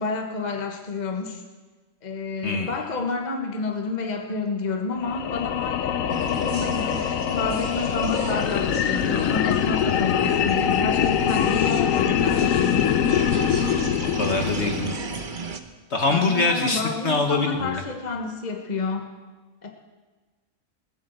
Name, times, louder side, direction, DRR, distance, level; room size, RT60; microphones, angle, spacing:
voice 1, 0.0-1.4 2.0-6.1 6.4-13.0 16.1-19.1 19.6-19.7, left 4 dB, 30° left, 3 dB, 1.4 m, -29 dB
sound 1, 5.0-15.3, left 9 dB, 75° left, 1.1 m, -24 dB
sound 2, 6.1-15.6, right 5 dB, 40° right, 1.0 m, -35 dB
voice 2, 14.1-14.9 15.9-17.8, left 3 dB, 55° left, 4 dB, 1.5 m, -24 dB
18.5 x 7.9 x 8.0 m, 1.3 s
omnidirectional pair, 1.5 m